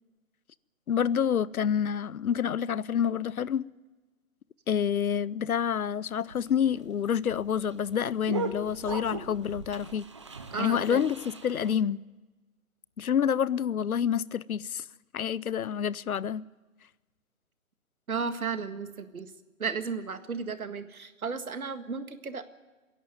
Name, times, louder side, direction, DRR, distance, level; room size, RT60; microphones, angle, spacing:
voice 1, 0.9-3.7 4.7-10.1 10.6-12.1 13.0-14.8 15.1-16.5, left 8 dB, 85° left, 0.7 m, -28 dB
sound 1, 6.1-11.7, right 4 dB, 20° right, 0.7 m, -39 dB
voice 2, 10.5-11.0 18.1-19.3 19.6-22.4, right 5 dB, 85° right, 1.9 m, -34 dB
26.0 x 11.0 x 9.4 m
hypercardioid pair, 165°, 42 cm